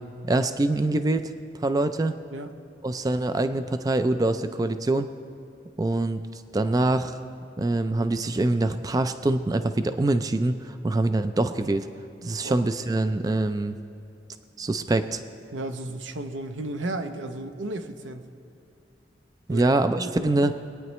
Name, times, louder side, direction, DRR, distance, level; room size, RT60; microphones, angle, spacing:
voice 1, 0.3-1.3 1.6-2.1 2.8-5.1 5.8-7.2 7.6-11.9 12.2-13.8 14.6-15.2 19.5-20.5, right 2 dB, 20° right, 10 dB, 0.3 m, -24 dB
voice 2, 12.2-12.7 15.5-18.3 19.5-20.4, right 2 dB, 90° right, 7 dB, 0.8 m, -34 dB
23.5 x 9.3 x 3.1 m, 2.6 s
head